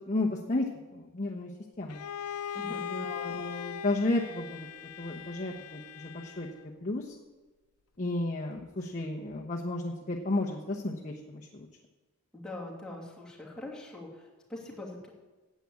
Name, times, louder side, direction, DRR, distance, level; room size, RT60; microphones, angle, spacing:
voice 1, 0.1-1.5 1.8-2.0 2.9-4.7 5.0-6.5 6.8-7.1 8.0-11.7, left 2 dB, 35° left, -1 dB, 1.0 m, -33 dB
Bowed string instrument, 1.9-6.7, left 8 dB, 85° left, 0.6 m, -40 dB
voice 2, 2.5-3.1 12.3-15.1, left 1 dB, 5° left, -4 dB, 2.6 m, -43 dB
10.0 x 8.4 x 8.6 m, 1.2 s
head